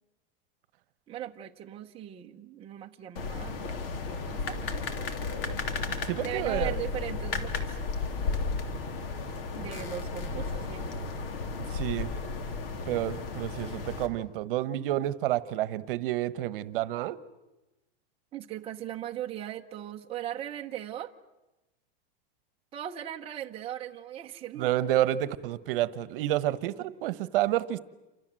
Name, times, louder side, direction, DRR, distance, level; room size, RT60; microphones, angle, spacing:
voice 1, 1.1-5.1 5.4-5.6 6.2-7.8 9.6-10.9 13.6-13.8 18.3-21.1 22.7-24.7, right 11 dB, 20° right, 2 dB, 1.0 m, -39 dB
sound 1, 3.2-14.1, left 4 dB, 65° left, 3.5 m, -34 dB
voice 2, 5.9-6.8 11.7-12.1 12.8-17.2 24.6-27.8, right 13 dB, 60° right, 16 dB, 1.2 m, -29 dB
28.5 x 26.0 x 7.7 m, 1.0 s
supercardioid pair, 165°, 31 cm